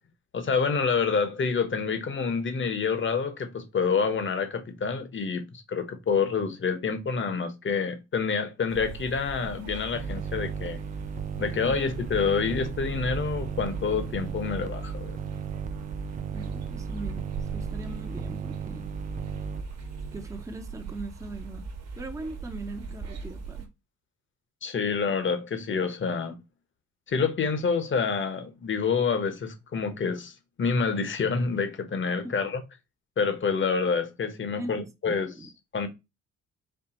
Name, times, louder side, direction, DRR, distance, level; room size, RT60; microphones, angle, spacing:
voice 1, 0.3-10.8 11.4-15.2 24.6-26.4 27.1-32.6 33.2-35.9, left 5 dB, 40° left, 1.1 m, -28 dB
sound 1, 8.7-23.7, right 5 dB, 60° right, 1.2 m, -40 dB
sound 2, 9.9-20.3, right 6 dB, 25° right, 0.4 m, -35 dB
voice 2, 16.3-17.3 17.5-18.8 20.1-21.7 22.0-23.7 34.6-35.5, right 2 dB, 10° right, 0.8 m, -40 dB
4.5 x 2.4 x 4.3 m
cardioid pair, 90°, 30 cm